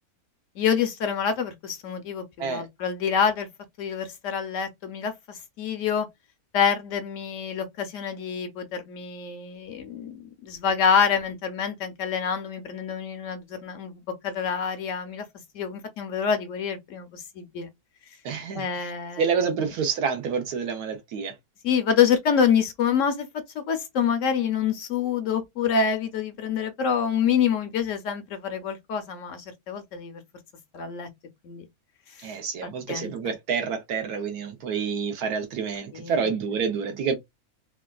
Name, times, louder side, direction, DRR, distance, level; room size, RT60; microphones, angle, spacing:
voice 1, 0.6-3.5 3.8-6.1 6.5-10.2 10.4-15.3 15.5-17.7 18.5-19.4 21.6-30.2 30.7-31.1 31.4-31.6 32.2-32.3 32.9-33.1 35.9-36.3, left 7 dB, 65° left, 0.9 m, -26 dB
voice 2, 18.2-18.9 19.2-21.3 32.2-37.2, right 6 dB, 85° right, 1.3 m, -28 dB
3.3 x 2.4 x 2.2 m
omnidirectional pair, 1.6 m